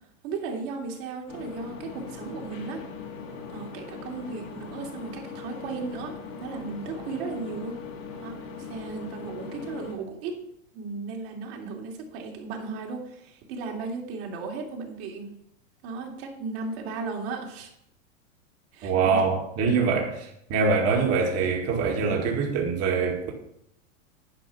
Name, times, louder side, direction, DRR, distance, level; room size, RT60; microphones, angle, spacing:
voice 1, 0.2-2.8 3.5-7.8 8.2-10.4 10.7-15.3 15.8-17.7 18.7-19.2, right 4 dB, 55° right, 2.7 m, -35 dB
sound 1, 1.3-9.9, left 5 dB, 75° left, 2.7 m, -40 dB
voice 2, 18.8-23.3, right 5 dB, 40° right, 2.0 m, -24 dB
10.5 x 5.1 x 6.0 m
hypercardioid pair, 115°, 39 cm